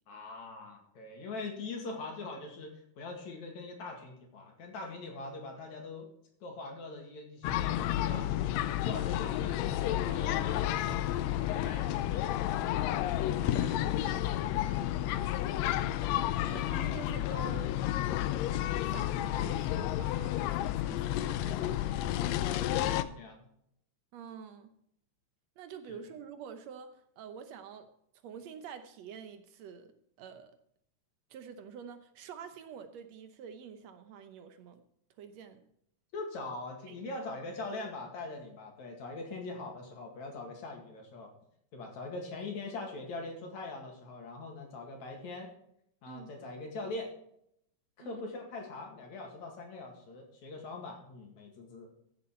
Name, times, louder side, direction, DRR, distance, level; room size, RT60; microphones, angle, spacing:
voice 1, 0.1-6.1 6.4-8.3 8.8-12.7 13.4-15.5 22.5-23.5 25.9-26.0 36.1-41.3 41.7-45.5 46.0-47.1 48.0-51.9, left 3 dB, 60° left, 2 dB, 3.4 m, -42 dB
sound 1, 7.4-23.0, left 13 dB, 85° left, 1.5 m, -31 dB
voice 2, 16.4-17.8 18.9-20.4 20.8-21.8 22.8-23.0 24.1-24.7 25.6-27.9 28.2-29.9 30.2-30.6 31.3-34.8 35.2-35.6 36.9-37.2 46.1-46.3 48.0-48.2, right 7 dB, 70° right, 9 dB, 1.8 m, -47 dB
14.5 x 7.2 x 4.3 m, 0.72 s
omnidirectional pair, 3.7 m